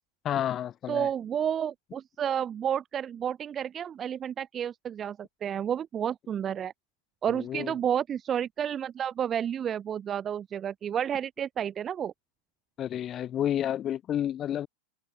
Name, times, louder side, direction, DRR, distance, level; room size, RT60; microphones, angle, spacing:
voice 1, 0.2-1.1 7.3-7.7 12.8-14.7, left 11 dB, 30° left, 0.9 m, -30 dB
voice 2, 0.9-6.7 7.2-12.1, right 9 dB, 25° right, 0.6 m, -31 dB
open air
figure-of-eight pair, 90°, 0 cm